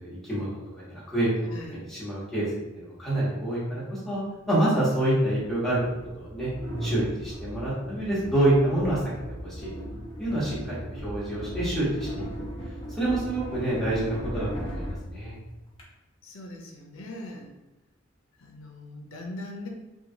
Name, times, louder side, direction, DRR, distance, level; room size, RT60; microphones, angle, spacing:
voice 1, 0.0-1.3 1.9-2.5 2.7-5.8 6.2-6.5 6.8-9.0 9.4-9.7 10.2-12.2 13.0-15.3, right 1 dB, ahead, -9 dB, 1.0 m, -27 dB
voice 2, 1.5-1.8 16.2-17.5 18.4-19.7, left 1 dB, 75° left, 2 dB, 0.6 m, -40 dB
sound 1, 5.2-15.8, equal, 25° left, 0.7 m, -37 dB
2.9 x 2.3 x 2.6 m, 1.0 s
head